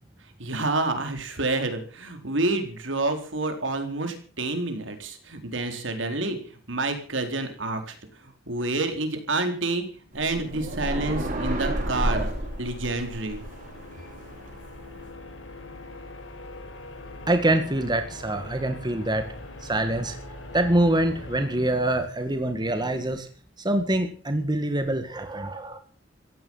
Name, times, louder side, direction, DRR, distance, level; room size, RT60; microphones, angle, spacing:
voice 1, 0.4-6.4 6.7-7.9 8.5-9.8 10.1-12.3 12.6-13.4, right 2 dB, 75° right, 6 dB, 4.2 m, -28 dB
sound 1, 9.9-22.7, left 2 dB, 80° left, 5.2 m, -43 dB
sound 2, 10.1-15.1, right 1 dB, 45° right, 7.7 m, -31 dB
voice 2, 17.3-19.3 19.6-20.2 20.5-23.3 23.6-25.8, right 1 dB, 25° right, 7 dB, 1.9 m, -25 dB
16.0 x 15.5 x 5.6 m, 0.42 s
head